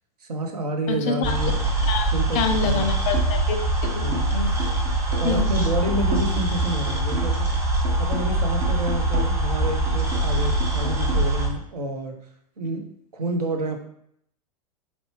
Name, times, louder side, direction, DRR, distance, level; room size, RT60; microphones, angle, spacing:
voice 1, 0.2-1.6 2.1-2.9 4.0-4.2 5.2-7.3 8.0-12.2 12.6-12.9 13.1-13.9, right 1 dB, 70° right, 4 dB, 0.7 m, -29 dB
voice 2, 0.9-1.4 1.9-4.0 4.3-4.5 5.2-5.5, left 5 dB, 35° left, 7 dB, 0.5 m, -26 dB
sound 1, 1.2-11.5, right 1 dB, 10° right, 1.1 m, -23 dB
sound 2, 3.1-3.5 3.8-7.5 7.8-11.1, right 2 dB, 40° right, 0.7 m, -36 dB
4.3 x 2.7 x 2.9 m, 0.69 s
figure-of-eight pair, 95°, 20 cm